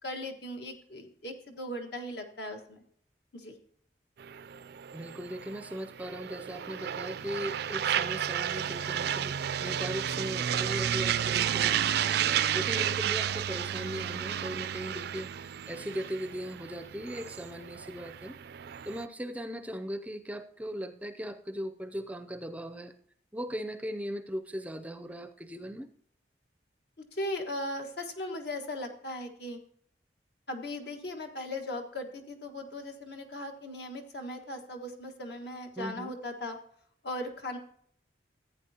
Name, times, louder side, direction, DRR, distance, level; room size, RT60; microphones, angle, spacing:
voice 1, 0.0-2.8 3.3-3.5 27.1-29.6 30.5-36.6 37.0-37.6, left 1 dB, 65° left, 4 dB, 1.5 m, -38 dB
sound 1, 4.2-19.0, right 9 dB, 65° right, 0.4 m, -32 dB
voice 2, 4.9-12.2 12.5-18.4 18.9-22.9 23.3-25.9 35.8-36.1, equal, 10° right, 8 dB, 0.5 m, -38 dB
14.5 x 8.9 x 2.8 m, 0.62 s
head